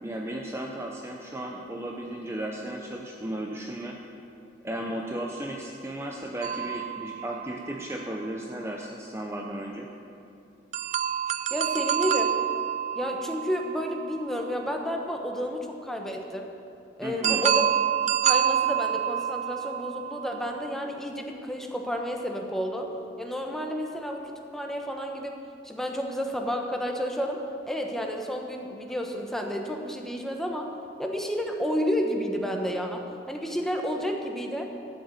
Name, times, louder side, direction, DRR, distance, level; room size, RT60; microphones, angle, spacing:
voice 1, 0.0-4.0 4.6-9.9 17.0-17.4, right 1 dB, 15° right, 0 dB, 0.7 m, -35 dB
sound 1, 6.4-8.1 10.7-14.6 17.2-20.7, right 9 dB, 40° right, 0.3 m, -28 dB
voice 2, 11.5-12.4 12.9-16.5 17.0-17.7 18.2-22.9 23.2-25.4 25.6-30.7 31.0-34.7, equal, ahead, 2 dB, 1.0 m, -31 dB
12.0 x 6.7 x 8.2 m, 2.6 s
head